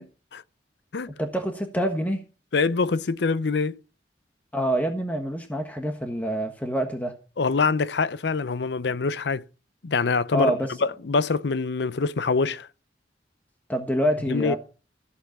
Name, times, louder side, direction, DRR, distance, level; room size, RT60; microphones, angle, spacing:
voice 1, 1.2-2.2 4.5-7.1 10.3-10.7 13.7-14.6, equal, 10° left, 1.4 m, -26 dB
voice 2, 2.5-3.8 7.4-9.4 9.8-10.6 10.8-12.7 14.3-14.6, left 4 dB, 70° left, 0.6 m, -24 dB
14.5 x 8.0 x 6.0 m
head